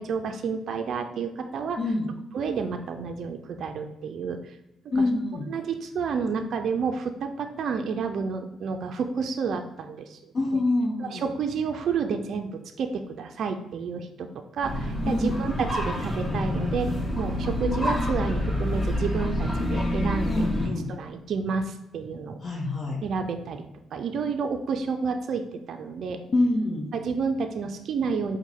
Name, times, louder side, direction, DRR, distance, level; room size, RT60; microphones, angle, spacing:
voice 1, 0.0-1.8 2.3-4.4 5.5-10.2 11.1-20.4 20.9-22.4 23.0-23.6 23.9-26.2 26.9-28.4, right 5 dB, 65° right, 6 dB, 0.3 m, -30 dB
voice 2, 1.8-2.1 4.9-5.6 10.3-11.2 15.0-15.4 20.2-20.9 22.4-23.0 26.3-26.9, left 2 dB, 55° left, -3 dB, 0.7 m, -26 dB
sound 1, 14.6-20.7, left 1 dB, 20° left, 1.1 m, -27 dB
4.6 x 2.1 x 4.1 m, 0.91 s
hypercardioid pair, 50°, 0 cm